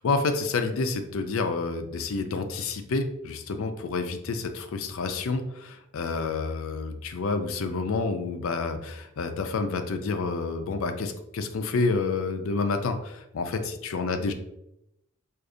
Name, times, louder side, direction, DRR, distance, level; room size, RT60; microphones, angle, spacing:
voice 1, 0.0-14.3, left 4 dB, 75° left, 7 dB, 0.4 m, -29 dB
4.8 x 2.5 x 2.6 m, 0.83 s
head